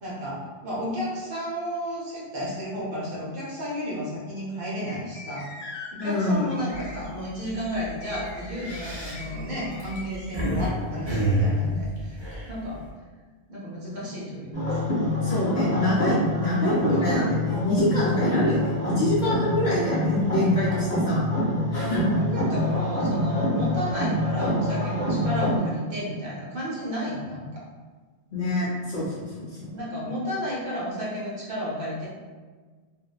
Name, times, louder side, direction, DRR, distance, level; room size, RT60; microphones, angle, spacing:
voice 1, 0.0-5.5 5.9-12.2 12.5-12.8 13.5-14.8 15.2-15.3 21.8-27.6 29.7-32.1, equal, 60° right, -6 dB, 0.9 m, -32 dB
sound 1, 4.8-10.5, left 3 dB, 80° left, 0.9 m, -43 dB
voice 2, 6.0-6.4 15.2-21.2 21.7-22.0 28.3-29.8, left 1 dB, 55° left, -6 dB, 0.6 m, -26 dB
sound 2, 6.7-7.0 7.4-7.6 8.4-10.7 11.1-12.9, right 1 dB, 35° right, 0.5 m, -27 dB
sound 3, 14.5-25.6, equal, 20° left, 0.8 m, -26 dB
2.6 x 2.1 x 2.3 m, 1.4 s
omnidirectional pair, 1.1 m